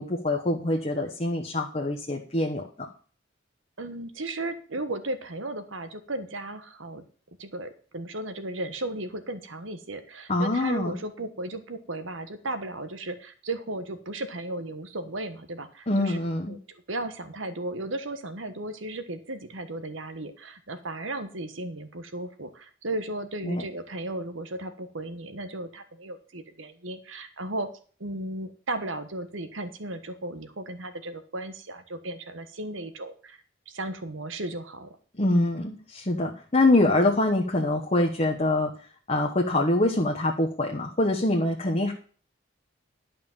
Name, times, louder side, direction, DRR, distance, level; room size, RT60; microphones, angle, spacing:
voice 1, 0.0-2.9 10.3-10.9 15.9-16.5 23.4-23.6 35.2-38.7 39.1-41.9, left 2 dB, 35° left, 1 dB, 1.1 m, -24 dB
voice 2, 3.8-7.0 7.4-16.2 16.5-16.6 16.9-27.7 28.0-33.4 33.7-34.9, right 2 dB, 75° right, 10 dB, 1.4 m, -35 dB
11.5 x 5.3 x 7.3 m, 0.43 s
head